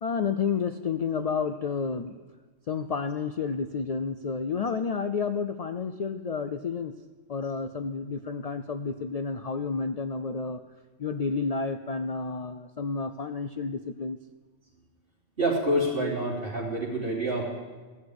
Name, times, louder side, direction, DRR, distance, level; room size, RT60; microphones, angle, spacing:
voice 1, 0.0-2.1 2.7-6.9 7.3-10.6 11.0-14.2, left 5 dB, 80° left, 9 dB, 0.3 m, -30 dB
voice 2, 15.4-17.4, right 1 dB, 50° right, -3 dB, 3.5 m, -27 dB
14.5 x 6.5 x 9.6 m, 1.4 s
omnidirectional pair, 1.3 m